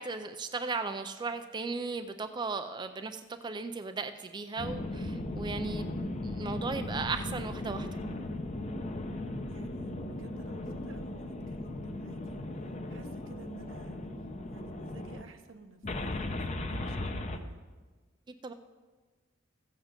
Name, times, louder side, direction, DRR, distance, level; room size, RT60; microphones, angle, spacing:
voice 1, 0.0-5.9 6.2-7.9 18.4-18.5, right 4 dB, 20° right, 8 dB, 0.4 m, -36 dB
sound 1, 4.6-15.2 15.8-17.4, left 1 dB, 35° left, 0.8 m, -37 dB
voice 2, 9.5-12.5 12.9-14.1 14.5-17.6, right 2 dB, 75° right, 7 dB, 0.9 m, -53 dB
14.0 x 8.1 x 5.1 m, 1.3 s
head